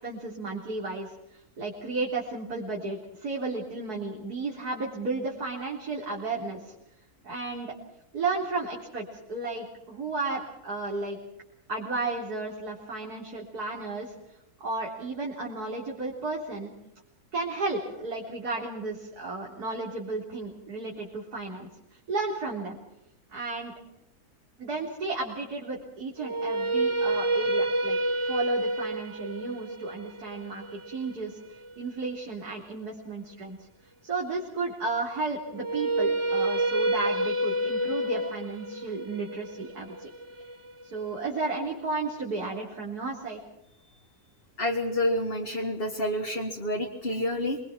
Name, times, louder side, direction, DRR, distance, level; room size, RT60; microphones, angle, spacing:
voice 1, 0.0-6.7 7.2-7.7 8.1-11.2 11.7-14.1 14.6-16.7 17.3-22.8 23.3-23.7 24.6-28.0 28.2-31.4 31.8-33.7 34.0-40.1 40.9-43.4, right 3 dB, 80° right, -2 dB, 4.3 m, -33 dB
sound 1, 26.2-32.3 35.5-41.6, right 1 dB, 20° right, 1.1 m, -29 dB
voice 2, 44.6-47.6, left 1 dB, 35° left, 1 dB, 2.2 m, -29 dB
26.5 x 23.0 x 6.1 m, 0.84 s
omnidirectional pair, 1.6 m